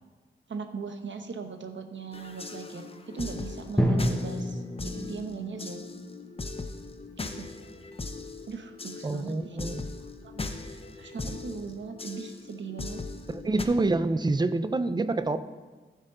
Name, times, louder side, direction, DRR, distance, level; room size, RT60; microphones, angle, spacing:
voice 1, 0.5-5.8 7.2-7.5 8.5-9.6 10.2-10.4 10.7-13.0, right 5 dB, 65° right, 6 dB, 0.9 m, -39 dB
sound 1, 2.1-13.7, left 3 dB, 25° left, 0.6 m, -39 dB
Drum, 3.8-7.8, equal, 5° left, 1.2 m, -31 dB
voice 2, 9.0-9.9 13.3-15.5, right 2 dB, 20° right, 12 dB, 0.4 m, -27 dB
15.0 x 6.6 x 3.8 m, 1.3 s
wide cardioid pair, 125°, 21 cm